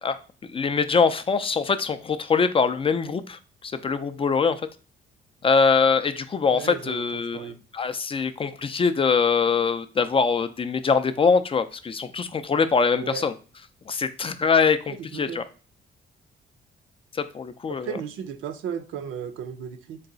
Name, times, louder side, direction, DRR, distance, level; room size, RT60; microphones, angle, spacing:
voice 1, 0.0-4.6 5.4-13.3 13.9-15.4 17.1-17.9, left 5 dB, 30° left, 9 dB, 0.3 m, -23 dB
voice 2, 6.5-7.6 12.9-13.3 14.9-15.4 17.7-20.0, right 8 dB, 80° right, 8 dB, 0.6 m, -35 dB
3.9 x 2.3 x 3.8 m, 0.36 s
cardioid pair, 90°, 20 cm